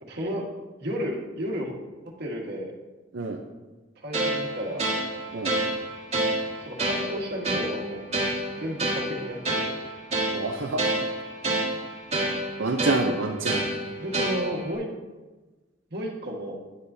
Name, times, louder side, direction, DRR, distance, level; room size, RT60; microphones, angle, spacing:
voice 1, 0.0-0.5 0.8-1.7 2.2-2.7 4.0-4.9 6.6-8.0 8.6-9.5 14.0-14.9 15.9-16.6, equal, 60° right, -1 dB, 1.5 m, -32 dB
sound 1, 4.1-14.7, right 1 dB, 35° right, 1.8 m, -29 dB
voice 2, 10.3-10.8 12.6-13.6, right 2 dB, 75° right, 1 dB, 0.6 m, -27 dB
9.6 x 8.5 x 2.7 m, 1.2 s
head